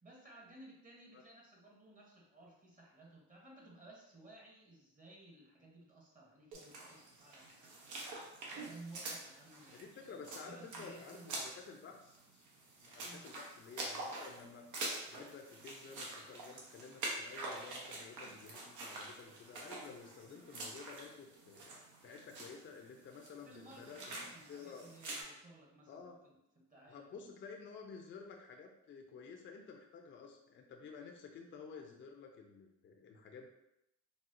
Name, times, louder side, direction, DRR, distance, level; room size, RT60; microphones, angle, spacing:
voice 1, 0.0-8.2 8.5-11.6 13.0-13.3 23.4-27.1, right 2 dB, 25° right, -2 dB, 1.0 m, -57 dB
sound 1, 6.5-25.2, right 2 dB, 80° right, 0.8 m, -46 dB
voice 2, 9.7-12.4 12.8-21.6 22.0-24.8 25.9-26.2 26.9-33.5, left 5 dB, 40° left, 2 dB, 0.5 m, -52 dB
4.1 x 2.0 x 2.5 m, 0.84 s
cardioid pair, 90°, 30 cm